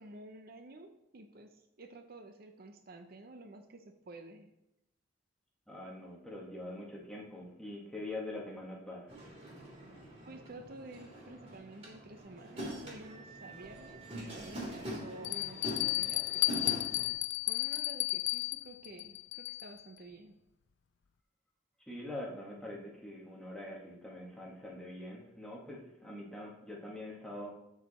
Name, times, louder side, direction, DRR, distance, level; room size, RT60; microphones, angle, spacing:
voice 1, 0.0-4.5 10.2-16.9 17.4-20.4, right 2 dB, 55° right, 6 dB, 0.7 m, -51 dB
voice 2, 5.7-9.1 21.9-27.5, left 1 dB, 5° left, -3 dB, 1.7 m, -44 dB
sound 1, 9.1-17.1, right 1 dB, 30° right, 3.3 m, -44 dB
Bell, 13.6-13.7 14.4-14.5 15.2-19.8, left 19 dB, 70° left, 0.4 m, -33 dB
12.5 x 4.9 x 4.2 m, 0.86 s
head